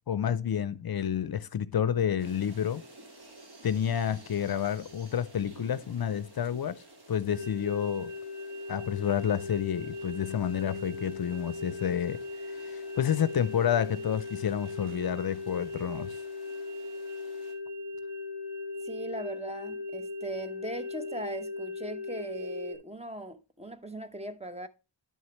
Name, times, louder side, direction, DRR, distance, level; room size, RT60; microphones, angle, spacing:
voice 1, 0.0-2.8 3.6-6.8 7.1-8.1 8.7-12.2 12.5-16.2, left 9 dB, 55° left, 0.5 m, -29 dB
sound 1, 2.2-17.5, right 2 dB, 60° right, 2.0 m, -53 dB
sound 2, 7.3-22.8, left 3 dB, 40° right, 2.9 m, -38 dB
voice 2, 18.8-24.7, right 1 dB, 15° right, 0.8 m, -39 dB
10.5 x 6.4 x 3.0 m
wide cardioid pair, 90°, 43 cm